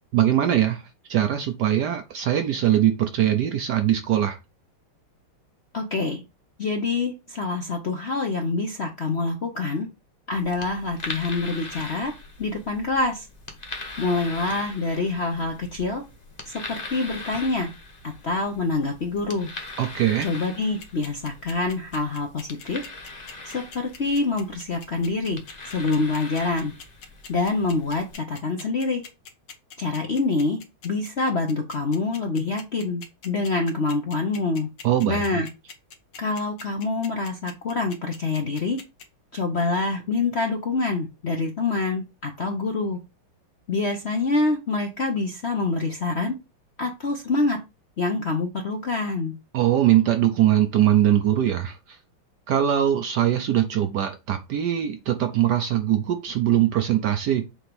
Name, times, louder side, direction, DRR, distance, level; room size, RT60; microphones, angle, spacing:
voice 1, 0.1-0.8 1.1-4.4 19.8-20.3 34.8-35.5 49.5-52.0 52.5-57.4, right 11 dB, 65° right, 1.1 m, -21 dB
voice 2, 5.7-6.2 6.6-9.9 10.3-12.1 12.4-13.3 14.0-16.0 16.4-16.5 16.9-17.7 18.2-19.5 20.2-22.8 23.4-25.4 25.7-26.7 27.3-29.0 29.8-34.7 35.1-35.5 36.2-38.8 39.3-43.0 43.7-46.3 46.8-47.6 48.0-49.3, left 3 dB, 50° left, 0.8 m, -26 dB
sound 1, 10.3-28.1, left 2 dB, 25° left, 1.2 m, -41 dB
sound 2, 20.8-39.0, left 6 dB, 70° left, 2.0 m, -42 dB
7.0 x 3.0 x 5.2 m
omnidirectional pair, 2.3 m